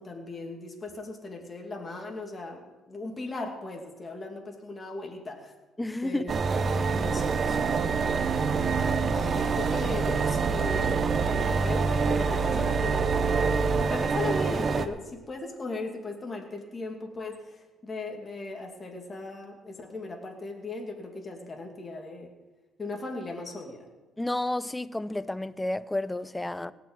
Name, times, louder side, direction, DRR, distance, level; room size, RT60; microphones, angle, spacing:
voice 1, 0.0-5.5 6.0-6.3 6.9-8.7 9.1-11.0 11.3-13.5 13.8-22.3 22.8-23.9 26.6-26.7, left 2 dB, 25° left, 2.5 m, -38 dB
voice 2, 5.8-6.2 24.2-26.7, left 1 dB, 10° left, 0.5 m, -31 dB
sound 1, 6.3-14.9, right 5 dB, 40° right, 0.9 m, -26 dB
17.5 x 6.1 x 9.0 m
cardioid pair, 110°, 0 cm